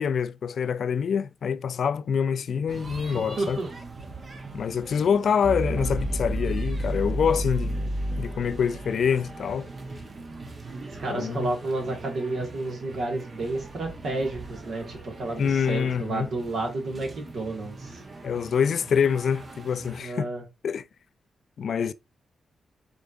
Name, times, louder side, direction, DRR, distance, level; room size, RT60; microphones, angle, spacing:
voice 1, 0.0-3.6 4.5-7.9 8.2-9.7 11.1-11.5 15.4-16.3 18.2-20.3 20.6-20.8 21.6-21.9, left 7 dB, 70° left, 0.3 m, -26 dB
sound 1, 2.7-20.0, right 3 dB, 50° right, 1.0 m, -42 dB
voice 2, 3.1-3.7 11.0-18.0 20.0-20.4, right 2 dB, 70° right, 1.8 m, -31 dB
sound 2, 5.4-9.5, right 1 dB, 10° right, 0.6 m, -29 dB
5.0 x 3.4 x 2.5 m
supercardioid pair, 55°, 0 cm